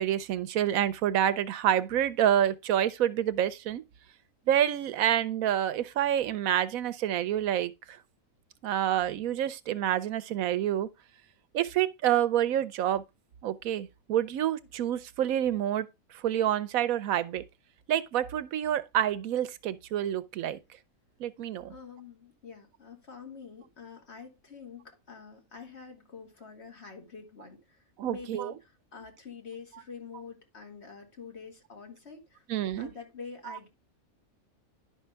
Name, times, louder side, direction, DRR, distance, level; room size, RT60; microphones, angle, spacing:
voice 1, 0.0-3.8 4.5-8.0 8.6-10.9 11.5-13.0 13.4-15.9 16.2-17.4 17.9-20.6 21.2-21.7 28.0-28.5 32.5-32.9 33.5-33.6, right 11 dB, 90° right, 1.1 m, -28 dB
voice 2, 21.7-32.4 32.8-33.7, left 5 dB, 50° left, 2.1 m, -46 dB
10.5 x 5.6 x 3.4 m
omnidirectional pair, 1.4 m